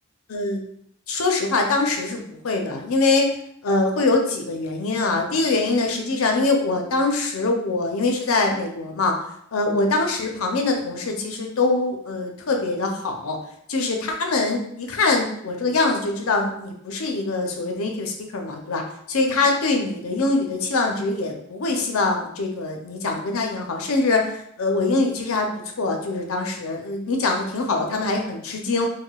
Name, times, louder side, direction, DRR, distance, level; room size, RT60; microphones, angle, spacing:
voice 1, 0.3-0.6 1.1-3.3 3.6-9.1 9.5-13.4 13.7-18.8 19.1-25.5 25.8-28.9, left 3 dB, 70° left, 2 dB, 0.6 m, -23 dB
4.8 x 2.1 x 2.3 m, 0.70 s
head